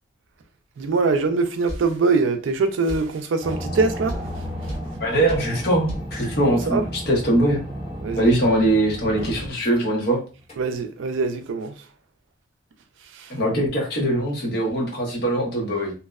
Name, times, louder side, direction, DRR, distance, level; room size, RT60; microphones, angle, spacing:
voice 1, 0.8-4.2 6.7-6.8 8.0-8.3 10.6-11.8 13.1-13.3, right 4 dB, 70° right, 0.4 m, -23 dB
sound 1, 1.7-1.9 2.9-3.1 4.1-4.3 4.7-4.9 5.3-5.5 5.9-6.1, right 1 dB, 70° left, 1.1 m, -31 dB
sound 2, 3.4-9.7 10.5-10.6, equal, 30° left, 1.2 m, -33 dB
voice 2, 5.0-7.6 8.2-10.2 13.3-15.9, right 1 dB, 50° left, 0.8 m, -22 dB
2.6 x 2.0 x 2.3 m
head